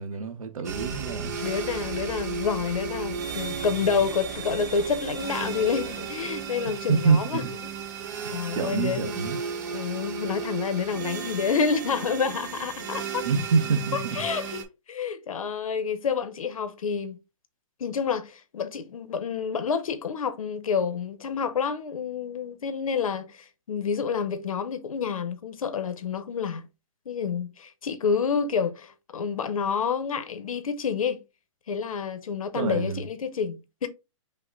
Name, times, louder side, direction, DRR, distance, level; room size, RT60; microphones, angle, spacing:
voice 1, 0.0-1.4 6.9-7.4 8.2-9.4 13.2-14.3 32.5-33.0, right 5 dB, 85° right, 1.0 m, -26 dB
sound 1, 0.6-14.6, right 6 dB, 30° right, 0.8 m, -34 dB
voice 2, 1.4-7.4 8.3-9.1 9.7-13.2 14.1-14.6 14.9-17.2 17.8-26.7 27.1-31.2 31.7-33.9, left 6 dB, 85° left, 0.9 m, -28 dB
5.6 x 2.1 x 3.8 m
hypercardioid pair, 175°, 17 cm